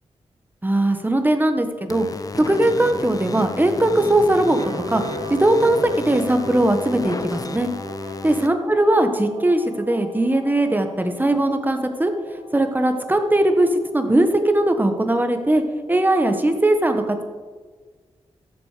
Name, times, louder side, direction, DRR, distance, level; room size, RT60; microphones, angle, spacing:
voice 1, 0.6-2.0 2.4-4.6 4.9-5.0 5.3-7.7 8.2-12.1 12.5-15.6 15.9-17.2, right 1 dB, 15° right, 6 dB, 1.4 m, -19 dB
sound 1, 1.9-8.5, left 3 dB, 30° left, 0.6 m, -33 dB
sound 2, 2.4-15.9, right 1 dB, 70° right, 2.6 m, -39 dB
13.5 x 7.8 x 5.1 m, 1.4 s
wide cardioid pair, 80°, 11 cm